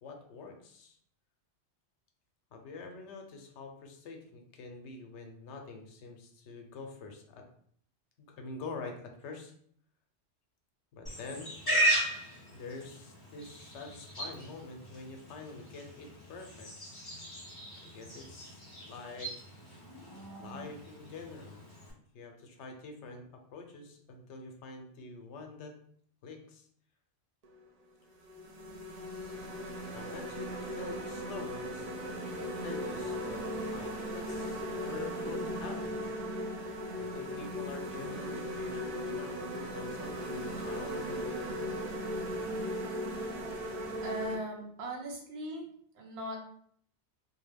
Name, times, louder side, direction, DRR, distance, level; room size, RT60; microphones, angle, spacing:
voice 1, 0.0-1.0 2.5-7.4 8.2-9.5 10.9-11.5 12.5-16.7 17.8-19.3 20.4-21.6 22.1-25.8 26.2-26.7 29.1-29.3 29.9-31.8 32.6-33.4 33.7-36.2 37.0-41.3, left 3 dB, 80° left, 3 dB, 0.9 m, -46 dB
Livestock farm animals working animals, 11.1-21.9, right 1 dB, 25° left, 0.7 m, -36 dB
sound 1, 27.4-27.6 28.2-44.3, equal, 50° right, 0.5 m, -37 dB
voice 2, 44.0-45.7 45.9-46.4, right 1 dB, 65° right, -1 dB, 1.0 m, -39 dB
2.5 x 2.2 x 3.3 m, 0.63 s
omnidirectional pair, 1.2 m